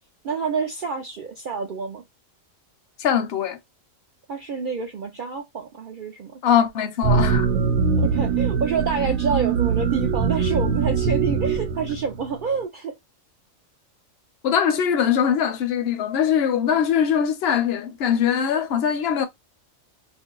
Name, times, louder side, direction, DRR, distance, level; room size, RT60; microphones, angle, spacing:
voice 1, 0.2-2.0 4.3-6.4 8.0-13.0, right 5 dB, 65° right, 0.5 m, -28 dB
voice 2, 3.0-3.6 6.4-7.5 14.4-19.3, left 8 dB, 60° left, 0.7 m, -21 dB
sound 1, 7.0-12.4, right 6 dB, 80° right, 1.0 m, -22 dB
2.6 x 2.0 x 3.6 m
omnidirectional pair, 1.4 m